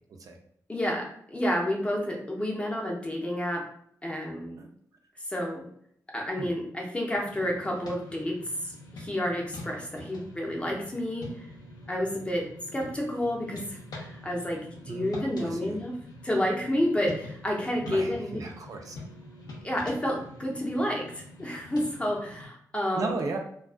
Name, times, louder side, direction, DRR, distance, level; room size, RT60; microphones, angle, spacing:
voice 1, 0.7-3.6 4.0-4.6 5.3-5.7 6.1-11.5 11.9-15.9 16.2-18.3 19.6-23.1, left 1 dB, 15° left, -1 dB, 0.6 m, -30 dB
sound 1, 7.1-22.5, left 1 dB, 75° left, 0.6 m, -45 dB
voice 2, 14.9-15.8 17.8-19.0 22.9-23.4, right 3 dB, 60° right, 3 dB, 0.4 m, -35 dB
2.3 x 2.2 x 2.4 m, 0.67 s
wide cardioid pair, 100°, 7 cm